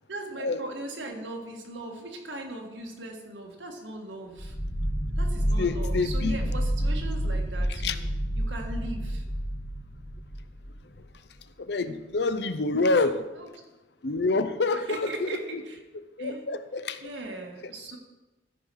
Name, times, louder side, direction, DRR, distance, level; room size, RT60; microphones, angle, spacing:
voice 1, 0.1-4.6 5.2-8.0 8.4-9.2 11.8-12.0 13.3-13.5 14.7-15.8 16.2-16.5 17.0-18.0, right 2 dB, 80° right, 3 dB, 1.7 m, -39 dB
sound 1, 4.4-11.1, equal, 35° left, 2.0 m, -29 dB
voice 2, 5.6-6.4 7.8-8.0 11.6-13.2 14.0-15.3 16.2-17.0 17.6-17.7, left 3 dB, 65° left, 11 dB, 0.6 m, -27 dB
13.5 x 5.7 x 4.7 m, 1.1 s
head